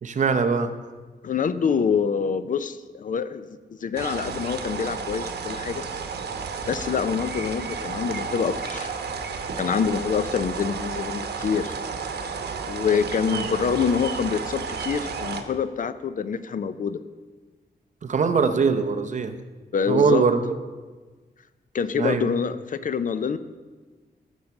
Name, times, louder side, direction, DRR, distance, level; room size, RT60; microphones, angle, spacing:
voice 1, 0.0-0.7 13.3-13.5 18.0-19.3 19.9-20.5 22.0-22.3, right 5 dB, 45° right, 8 dB, 0.8 m, -22 dB
voice 2, 1.2-5.8 6.7-8.9 9.6-11.7 12.7-17.0 19.7-20.2 21.7-23.4, left 6 dB, 55° left, 13 dB, 0.5 m, -26 dB
sound 1, 4.0-15.4, right 5 dB, 90° right, 1.0 m, -32 dB
14.0 x 6.8 x 5.9 m, 1.4 s
wide cardioid pair, 155°, 17 cm